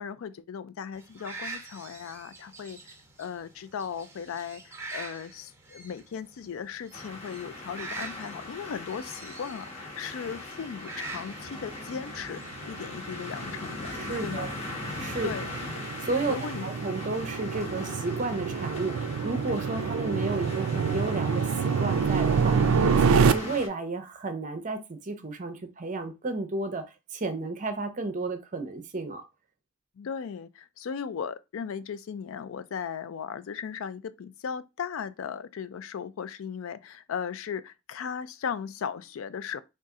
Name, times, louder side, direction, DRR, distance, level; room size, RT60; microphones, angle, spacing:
voice 1, 0.0-2.8 3.2-14.0 14.2-14.5 15.2-15.5 16.3-16.7 22.5-23.0 30.0-39.6, left 7 dB, 70° left, 0.4 m, -37 dB
sound 1, 0.9-13.2, right 3 dB, 10° right, 1.0 m, -45 dB
sound 2, 6.9-23.7, left 2 dB, 30° left, 1.1 m, -40 dB
sound 3, 12.2-23.3, right 6 dB, 75° right, 0.4 m, -27 dB
voice 2, 13.9-14.5 15.0-15.3 16.0-29.2, right 3 dB, 35° right, 0.6 m, -33 dB
4.0 x 2.5 x 3.6 m
head